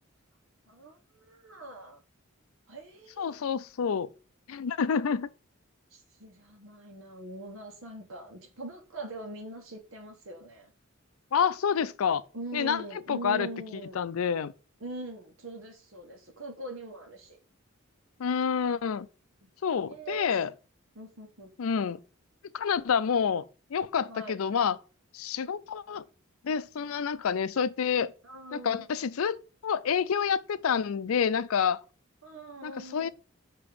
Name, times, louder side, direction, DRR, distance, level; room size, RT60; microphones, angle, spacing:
voice 1, 0.7-2.0 2.7-3.5 5.9-10.7 12.3-14.2 14.8-17.4 19.4-19.5 19.9-20.3 20.9-21.5 24.1-24.4 28.2-28.9 32.2-33.1, right 2 dB, 70° right, 1.3 m, -42 dB
voice 2, 3.2-4.1 4.5-5.3 11.3-12.2 12.5-12.8 13.1-13.5 14.0-14.5 18.2-19.1 19.6-20.5 21.6-22.0 22.5-23.4 23.7-24.8 25.1-26.0 26.4-28.1 28.5-29.4 29.6-31.8 32.6-33.1, left 7 dB, 85° left, 0.4 m, -28 dB
6.9 x 2.9 x 4.9 m
head